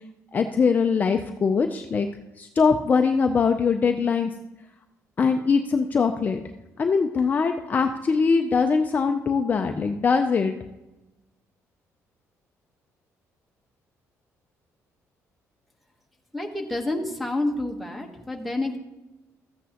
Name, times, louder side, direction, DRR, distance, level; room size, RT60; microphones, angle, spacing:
voice 1, 0.3-2.1 2.4-4.3 5.2-6.4 6.8-10.6, left 5 dB, 30° left, 5 dB, 0.4 m, -22 dB
voice 2, 16.3-18.8, left 2 dB, ahead, 3 dB, 1.1 m, -28 dB
14.0 x 8.2 x 2.9 m, 1.0 s
cardioid pair, 150°, 6 cm